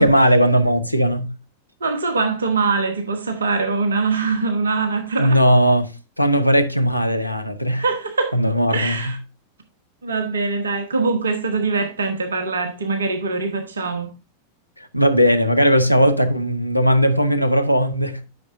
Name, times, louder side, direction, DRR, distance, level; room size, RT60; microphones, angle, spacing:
voice 1, 0.0-1.3 5.2-5.9 6.2-7.8 8.3-9.1 14.8-18.2, equal, 90° left, 0.7 m, -17 dB
voice 2, 1.8-5.4 7.8-8.4 8.7-9.2 10.0-14.1, right 4 dB, 70° right, 1.1 m, -23 dB
10.5 x 6.1 x 2.6 m
figure-of-eight pair, 90°, 0 cm